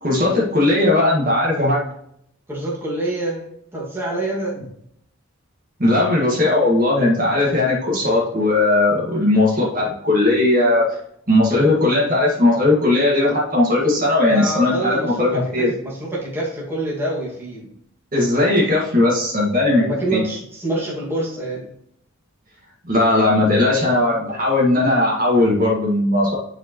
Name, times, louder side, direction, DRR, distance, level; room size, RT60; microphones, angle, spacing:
voice 1, 0.0-1.8 5.8-10.8 11.3-15.7 18.1-19.8 20.1-20.2 22.9-26.3, left 2 dB, 40° right, -4 dB, 1.8 m, -18 dB
voice 2, 2.5-3.4 3.7-4.6 14.2-17.7 19.8-21.7, right 1 dB, 10° right, -6 dB, 2.0 m, -26 dB
10.5 x 4.6 x 3.0 m, 0.73 s
head